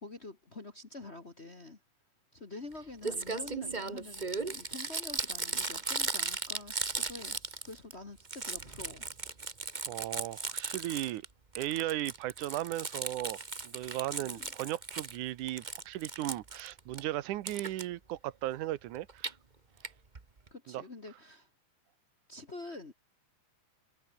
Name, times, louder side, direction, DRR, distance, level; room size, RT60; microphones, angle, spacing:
voice 1, 0.0-1.8 2.3-9.1 14.2-14.5 20.5-21.5 22.3-22.9, left 2 dB, 30° left, 1.3 m, -47 dB
Crumpling crinkling, 2.7-2.8 3.0-7.9 8.2-11.2 11.5-15.2 15.5-17.0 17.5-17.8 18.9-19.3 19.8-19.9 20.1-20.2 20.5-20.6, right 4 dB, 30° right, 0.8 m, -37 dB
voice 2, 9.9-11.2 11.6-19.3 20.7-20.8, right 15 dB, 85° right, 2.4 m, -36 dB
omnidirectional pair, 3.5 m